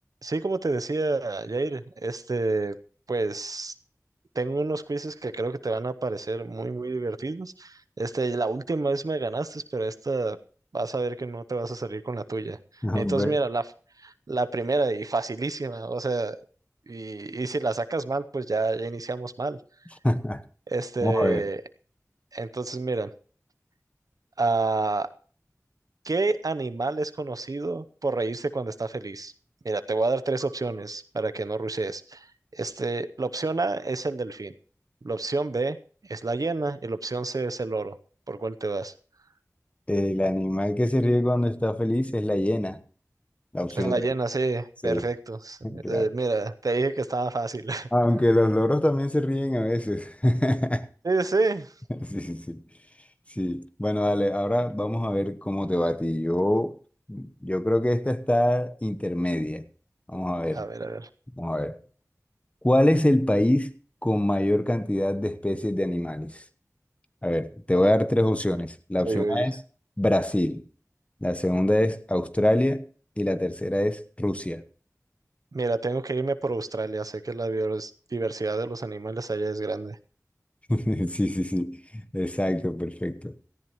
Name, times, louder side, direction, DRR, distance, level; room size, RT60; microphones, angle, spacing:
voice 1, 0.2-2.8 3.1-3.7 4.3-10.4 10.7-12.6 13.0-13.6 14.0-16.4 16.9-19.6 20.7-21.6 22.3-23.1 24.4-25.1 26.0-29.3 29.6-32.3 32.5-34.5 35.0-35.8 36.1-38.0 38.3-38.9 43.8-47.9 51.0-51.7 60.5-61.1 69.0-69.5 75.5-80.0, right 3 dB, 85° right, 0.7 m, -28 dB
voice 2, 12.8-13.3 20.0-20.4 21.0-21.4 39.9-42.8 43.5-44.1 44.8-45.1 45.6-46.0 47.9-50.9 51.9-52.6 53.3-56.8 57.1-59.6 60.1-60.6 61.4-61.8 62.6-63.7 64.0-66.4 67.2-69.6 70.0-70.6 71.2-72.8 73.2-74.6 80.7-83.3, left 1 dB, 20° left, 1.0 m, -25 dB
18.0 x 14.0 x 3.0 m
wide cardioid pair, 50°, 6 cm